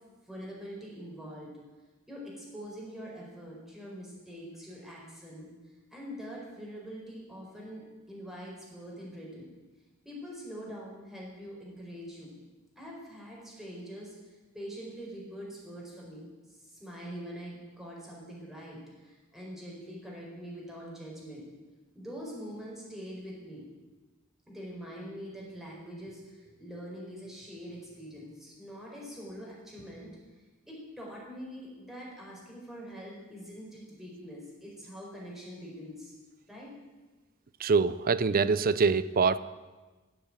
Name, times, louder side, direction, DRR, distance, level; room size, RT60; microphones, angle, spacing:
voice 1, 0.3-1.5 2.1-5.5 5.9-9.5 10.0-12.3 12.8-14.1 14.5-16.2 16.7-21.5 21.9-23.6 24.5-30.1 30.7-36.1 36.5-36.7, equal, ahead, -4 dB, 4.8 m, -44 dB
voice 2, 37.6-39.4, right 5 dB, 40° right, 16 dB, 0.5 m, -24 dB
16.0 x 7.9 x 8.9 m, 1.2 s
head